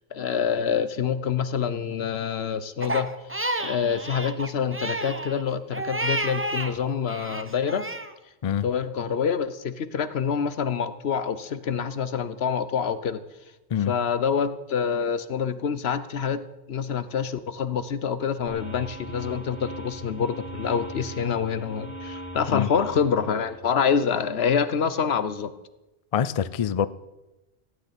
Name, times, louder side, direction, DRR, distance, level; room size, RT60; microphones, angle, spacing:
voice 1, 0.0-3.1 3.6-7.9 8.6-13.2 13.8-25.5, left 7 dB, 70° left, 13 dB, 1.1 m, -26 dB
Crying sobbing, 2.8-6.7 7.1-8.1, right 1 dB, 15° right, 0.7 m, -30 dB
sound 1, 18.5-23.6, right 1 dB, 90° right, 4.2 m, -39 dB
voice 2, 26.1-26.9, left 9 dB, 45° left, 16 dB, 0.5 m, -25 dB
15.5 x 6.7 x 9.8 m, 1.0 s
omnidirectional pair, 1.1 m